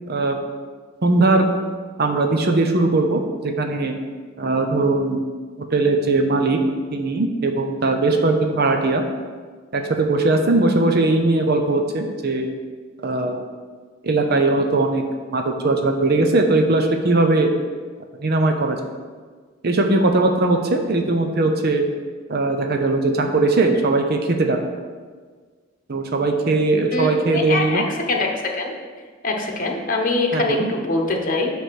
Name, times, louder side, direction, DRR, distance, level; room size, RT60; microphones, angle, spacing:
voice 1, 0.1-0.4 1.0-1.5 2.0-3.9 4.4-5.2 5.7-6.6 6.9-9.0 9.7-12.5 13.0-13.4 14.0-15.0 15.3-17.5 18.2-18.8 19.6-21.8 22.3-24.6 25.9-27.9 30.3-30.7, right 2 dB, 50° right, 4 dB, 0.7 m, -19 dB
voice 2, 26.9-28.3 28.6-28.7 29.2-31.5, left 3 dB, 45° left, 1 dB, 1.0 m, -23 dB
9.2 x 3.4 x 6.2 m, 1.5 s
head